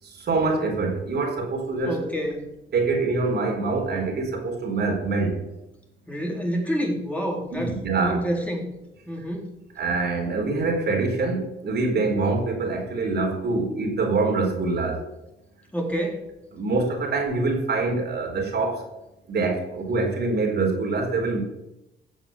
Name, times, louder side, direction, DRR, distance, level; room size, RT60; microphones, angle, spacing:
voice 1, 0.0-2.0 2.7-5.4 7.5-8.2 9.8-15.0 16.5-18.8 19.3-21.4, right 3 dB, 55° right, 1 dB, 4.3 m, -25 dB
voice 2, 1.9-2.5 6.1-7.7 8.0-8.7 9.1-9.5 15.7-16.2, equal, 5° left, -1 dB, 3.9 m, -28 dB
15.5 x 7.3 x 7.2 m, 0.91 s
cardioid pair, 90°, 20 cm